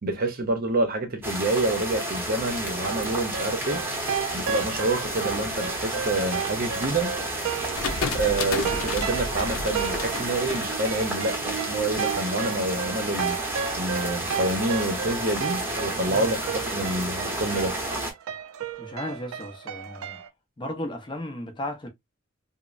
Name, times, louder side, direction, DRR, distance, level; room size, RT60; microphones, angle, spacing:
voice 1, 0.0-3.8 4.3-7.1 8.1-13.4 13.8-17.8, right 2 dB, 45° right, 0.7 m, -27 dB
sound 1, 1.2-18.1, right 1 dB, 10° right, 0.8 m, -31 dB
sound 2, 2.9-20.3, right 8 dB, 80° right, 0.4 m, -34 dB
sound 3, 7.8-11.6, left 4 dB, 85° left, 0.6 m, -32 dB
voice 2, 18.8-20.2 20.6-21.9, left 1 dB, 25° left, 0.6 m, -35 dB
3.0 x 2.0 x 2.4 m
head